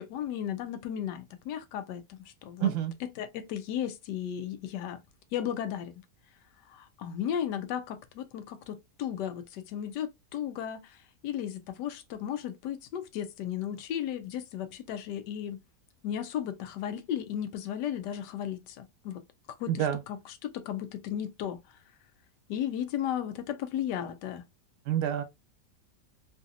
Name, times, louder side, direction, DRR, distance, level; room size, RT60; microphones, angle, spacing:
voice 1, 0.0-2.7 3.2-5.0 5.3-6.0 6.7-15.6 16.0-19.2 19.6-21.8 22.5-24.5, left 10 dB, 80° left, 1.2 m, -35 dB
voice 2, 2.6-2.9 19.7-20.0 24.9-25.2, right 10 dB, 75° right, 1.3 m, -27 dB
3.1 x 2.6 x 2.5 m
omnidirectional pair, 1.9 m